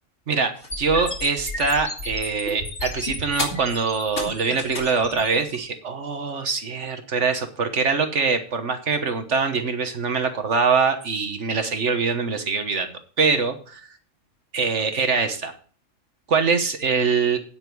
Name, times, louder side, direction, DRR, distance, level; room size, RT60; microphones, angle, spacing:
voice 1, 0.3-12.9 13.2-13.8 14.5-15.5 16.3-17.4, right 5 dB, 65° right, 7 dB, 1.4 m, -23 dB
sound 1, 0.6-5.6, left 2 dB, 55° left, 2.7 m, -32 dB
9.2 x 8.8 x 4.6 m, 0.42 s
omnidirectional pair, 1.4 m